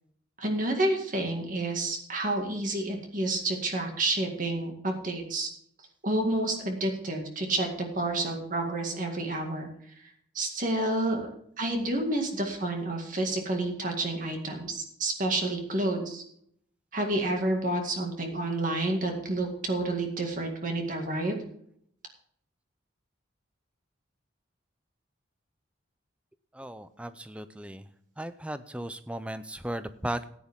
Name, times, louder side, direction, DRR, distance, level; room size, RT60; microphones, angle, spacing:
voice 1, 0.4-5.5 6.0-9.7 10.3-11.3 11.6-16.2 16.9-21.4, right 2 dB, 40° right, 2 dB, 2.0 m, -29 dB
voice 2, 26.5-27.8 28.2-30.3, right 1 dB, 5° right, 12 dB, 0.5 m, -36 dB
15.5 x 9.8 x 3.6 m, 0.67 s
head